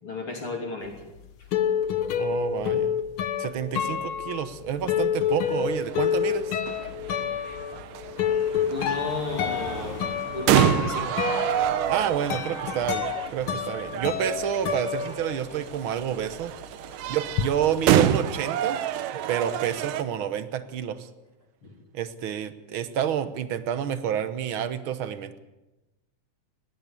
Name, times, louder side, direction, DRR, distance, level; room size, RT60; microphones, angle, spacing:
voice 1, 0.0-1.0 1.4-1.5 8.7-10.0 10.3-11.2 16.9-17.1 21.6-21.8, left 3 dB, 40° left, 2 dB, 3.5 m, -34 dB
sound 1, 0.9-15.8 16.0-17.5, left 8 dB, 65° left, 1.3 m, -29 dB
voice 2, 2.1-2.9 3.4-6.5 11.9-16.5 17.1-18.8 19.3-21.1 21.9-25.4, right 9 dB, 65° right, 12 dB, 1.2 m, -29 dB
Car passing by, 5.1-5.2 5.5-16.5, right 2 dB, 5° right, 5.7 m, -46 dB
sound 2, 5.3-20.0, right 10 dB, 85° right, 2.6 m, -28 dB
20.0 x 16.5 x 8.4 m, 1.0 s
omnidirectional pair, 3.7 m